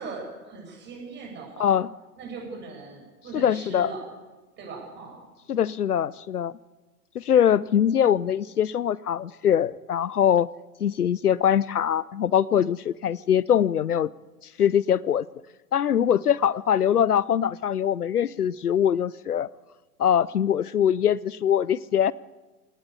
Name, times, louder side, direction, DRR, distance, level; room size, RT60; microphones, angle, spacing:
voice 1, 0.0-1.7 2.2-4.0 4.6-5.2, right 4 dB, 25° right, 0 dB, 7.9 m, -39 dB
voice 2, 3.3-3.9 5.5-6.5 7.1-10.5 10.8-14.1 14.6-15.3 15.7-19.5 20.0-22.1, left 9 dB, 70° left, 23 dB, 0.7 m, -22 dB
25.5 x 18.5 x 8.4 m, 1.2 s
figure-of-eight pair, 110°, 46 cm